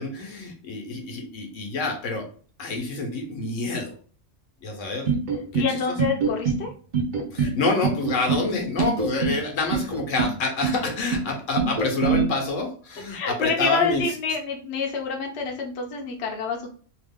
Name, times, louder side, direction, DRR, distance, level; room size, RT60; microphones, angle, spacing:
voice 1, 0.0-2.3 2.6-3.9 4.6-5.1 5.5-5.6 7.3-14.0, left 3 dB, 80° left, 2 dB, 1.2 m, -27 dB
sound 1, 5.1-5.7 6.0-6.6 6.9-7.5 7.8-8.4 8.8-9.4 9.7-10.3 10.6-11.2 11.6-12.2, right 5 dB, 50° right, 0.6 m, -24 dB
voice 2, 5.5-6.7 7.4-7.5 13.1-16.7, left 5 dB, 65° left, 1 dB, 0.9 m, -27 dB
2.9 x 2.4 x 3.4 m, 0.42 s
omnidirectional pair, 1.3 m